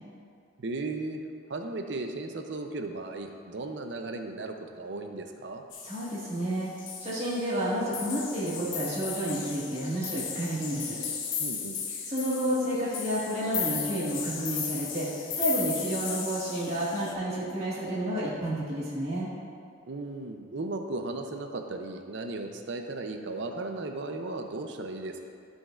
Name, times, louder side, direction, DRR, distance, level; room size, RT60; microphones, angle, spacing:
voice 1, 0.6-1.2 1.5-5.6 11.4-11.8 19.9-25.2, right 2 dB, 60° right, 4 dB, 0.6 m, -36 dB
sound 1, 5.7-6.4 6.8-7.6 7.9-17.1, left 6 dB, 70° left, 0.9 m, -36 dB
voice 2, 5.8-6.7 7.0-11.0 12.1-15.1 15.4-19.3, right 1 dB, 30° right, -8 dB, 1.8 m, -30 dB
14.5 x 5.2 x 2.5 m, 2.3 s
head